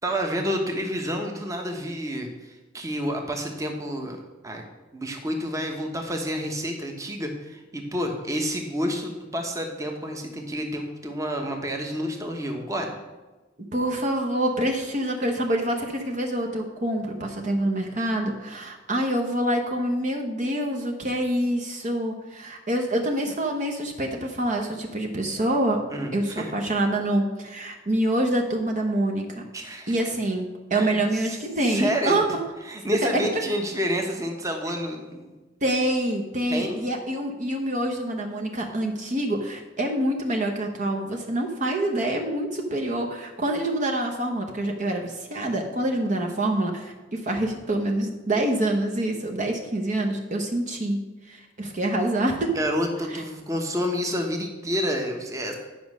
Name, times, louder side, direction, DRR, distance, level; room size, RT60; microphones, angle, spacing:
voice 1, 0.0-4.2 4.4-4.6 4.9-13.0 25.9-26.5 29.5-29.9 30.7-31.4 31.7-32.2 32.7-35.3 36.5-36.8 52.5-55.6, equal, 15° right, 3 dB, 1.1 m, -29 dB
voice 2, 13.7-25.8 26.1-29.4 29.9-32.4 33.0-33.1 35.6-52.5 53.1-53.2, right 1 dB, 40° right, 2 dB, 1.0 m, -26 dB
10.5 x 5.3 x 6.2 m, 1.2 s
head